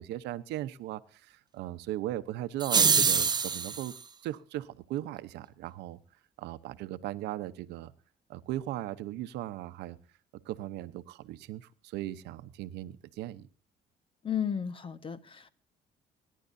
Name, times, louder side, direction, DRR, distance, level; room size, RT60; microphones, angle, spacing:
voice 1, 0.0-3.9 4.2-6.0 6.4-7.9 8.3-10.0 10.5-13.5, right 14 dB, 85° right, 13 dB, 0.9 m, -38 dB
sound 1, 2.6-3.9, right 5 dB, 25° right, 0.7 m, -25 dB
voice 2, 14.2-15.5, left 8 dB, 30° left, 13 dB, 1.3 m, -33 dB
24.5 x 11.0 x 2.7 m, 0.40 s
cardioid pair, 110°, 17 cm